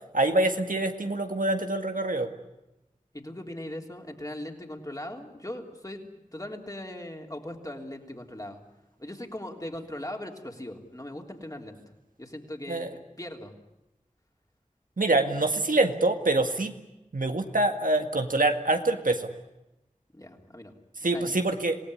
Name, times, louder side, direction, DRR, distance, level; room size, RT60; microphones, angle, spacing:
voice 1, 0.1-2.3 12.7-12.9 15.0-16.7 17.1-19.3 21.0-21.8, right 2 dB, 90° right, 5 dB, 1.9 m, -25 dB
voice 2, 3.1-6.0 6.3-8.6 9.0-11.8 12.2-13.5 20.1-20.7 21.0-21.3, left 1 dB, 25° left, 2 dB, 3.5 m, -39 dB
26.5 x 18.0 x 9.9 m, 0.96 s
wide cardioid pair, 50°, 14 cm